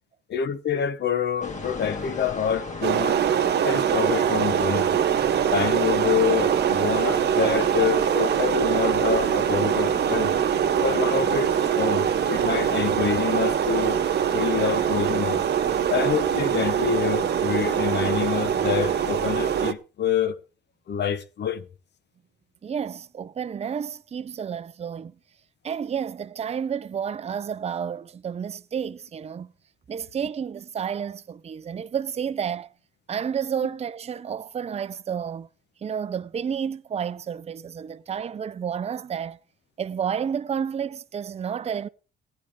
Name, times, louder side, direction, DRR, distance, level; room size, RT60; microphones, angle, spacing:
voice 1, 0.3-3.2 3.6-4.9 5.5-10.3 10.8-11.5 11.8-14.0 14.3-15.4 15.9-20.4 20.9-21.6, left 8 dB, 60° left, 1.2 m, -27 dB
sound 1, 1.4-19.7, left 3 dB, 35° left, 2.0 m, -38 dB
sound 2, 2.8-19.7, right 9 dB, 55° right, 0.9 m, -23 dB
voice 2, 22.6-25.1 25.6-29.5 29.9-32.7 33.1-35.5 35.8-39.4 39.8-41.9, right 7 dB, 30° right, 0.5 m, -30 dB
16.0 x 10.5 x 3.6 m
cardioid pair, 90°, 20 cm